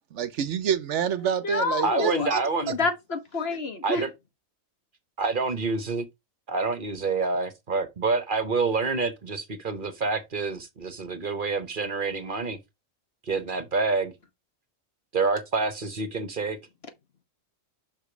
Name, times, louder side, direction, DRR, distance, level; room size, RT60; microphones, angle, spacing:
voice 1, 0.1-2.4, right 8 dB, 70° right, 0.9 m, -27 dB
voice 2, 1.2-2.3 2.7-4.0, left 3 dB, 50° left, 1.4 m, -28 dB
voice 3, 1.8-2.8 3.8-4.1 5.2-6.1 6.5-12.6 13.3-14.1 15.1-16.6, right 4 dB, 45° right, 1.0 m, -27 dB
5.9 x 5.1 x 5.0 m
omnidirectional pair, 1.3 m